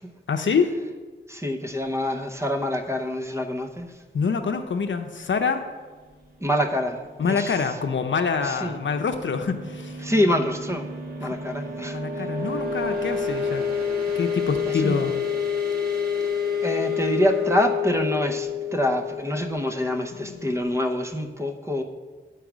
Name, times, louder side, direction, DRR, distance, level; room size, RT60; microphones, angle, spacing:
voice 1, 0.3-0.7 4.1-5.7 7.2-10.0 11.9-13.9 14.1-15.1 20.2-20.4, left 5 dB, 75° left, 6 dB, 0.7 m, -26 dB
voice 2, 1.3-3.9 6.4-7.0 7.3-7.6 8.4-8.8 10.0-10.9 11.2-12.3 14.6-15.0 16.6-21.8, equal, 15° right, 5 dB, 0.8 m, -26 dB
sound 1, 8.4-20.8, left 6 dB, 50° right, 1.6 m, -29 dB
9.2 x 4.7 x 6.1 m, 1.4 s
wide cardioid pair, 90°, 20 cm